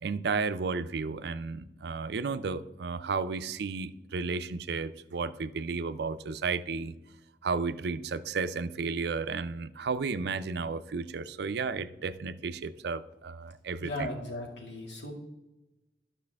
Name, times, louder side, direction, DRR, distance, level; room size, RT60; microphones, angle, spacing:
voice 1, 0.0-6.9 7.4-14.1, right 4 dB, 65° right, 13 dB, 0.4 m, -33 dB
voice 2, 13.8-15.1, left 1 dB, 80° left, -1 dB, 2.3 m, -37 dB
12.5 x 5.7 x 3.5 m, 1.0 s
head